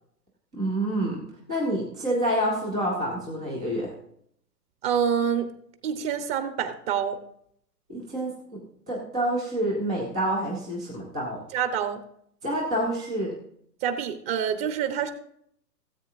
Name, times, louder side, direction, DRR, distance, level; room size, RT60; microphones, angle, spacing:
voice 1, 0.5-1.2 1.5-3.9 7.9-8.6 8.9-11.4 12.4-13.3, right 1 dB, 5° right, -4 dB, 0.3 m, -28 dB
voice 2, 4.8-5.5 5.8-7.2 11.5-12.0 13.8-15.1, right 8 dB, 35° right, 8 dB, 1.0 m, -26 dB
17.0 x 7.9 x 2.6 m, 0.68 s
hypercardioid pair, 125°, 50 cm